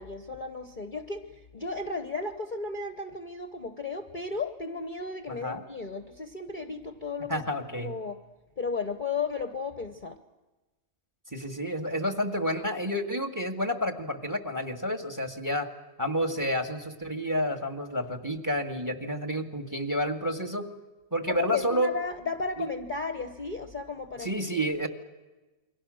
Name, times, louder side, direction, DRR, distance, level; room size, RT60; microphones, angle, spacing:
voice 1, 0.0-7.4 7.8-8.2 8.6-10.2 21.3-24.3, left 4 dB, 35° left, 8 dB, 1.1 m, -34 dB
voice 2, 5.3-5.6 7.3-7.9 11.3-15.7 16.0-20.7 21.1-21.9 22.6-22.7 24.2-24.9, equal, 10° right, 7 dB, 1.7 m, -30 dB
28.5 x 23.0 x 6.4 m, 1.1 s
omnidirectional pair, 1.7 m